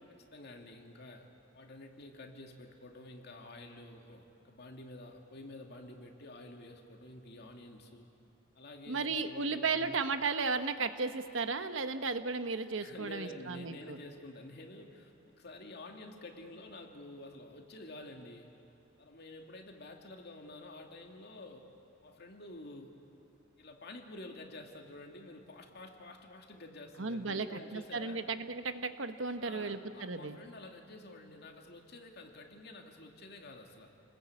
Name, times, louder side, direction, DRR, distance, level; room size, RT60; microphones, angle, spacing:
voice 1, 0.1-1.3 1.5-8.1 8.6-9.9 12.8-18.5 19.0-21.7 22.0-23.0 23.6-28.3 29.4-33.9, left 2 dB, 55° left, 3 dB, 2.5 m, -50 dB
voice 2, 8.9-14.0 27.0-30.4, right 4 dB, 75° right, 9 dB, 1.2 m, -35 dB
29.5 x 20.0 x 8.5 m, 2.9 s
head